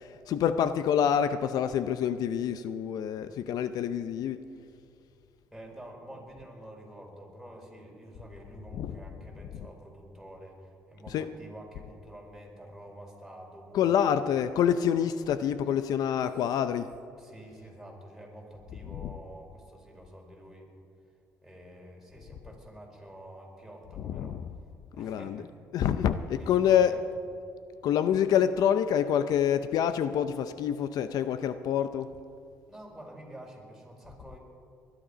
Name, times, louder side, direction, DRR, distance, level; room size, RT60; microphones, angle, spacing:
voice 1, 0.0-4.4 8.7-8.9 11.1-11.3 13.7-16.9 24.0-24.5 25.0-25.4 25.7-27.0 27.8-32.1, left 9 dB, 75° left, 0.6 m, -27 dB
voice 2, 5.5-14.0 17.2-20.7 21.4-24.4 24.9-25.5 25.9-27.0 32.7-34.4, right 1 dB, ahead, 4.6 m, -48 dB
21.0 x 11.5 x 5.1 m
cardioid pair, 85°, 7 cm